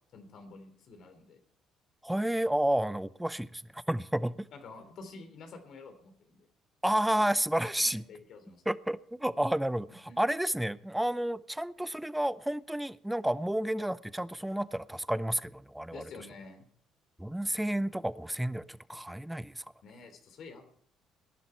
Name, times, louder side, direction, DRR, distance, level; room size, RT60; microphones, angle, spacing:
voice 1, 0.1-1.4 4.5-6.5 7.8-8.6 9.9-10.2 15.9-16.6 19.8-20.6, left 4 dB, 60° left, 3.3 m, -49 dB
voice 2, 2.0-4.5 6.8-8.0 8.7-16.0 17.2-19.6, right 1 dB, 5° right, 0.7 m, -31 dB
20.0 x 11.0 x 4.5 m
hypercardioid pair, 55°, 0 cm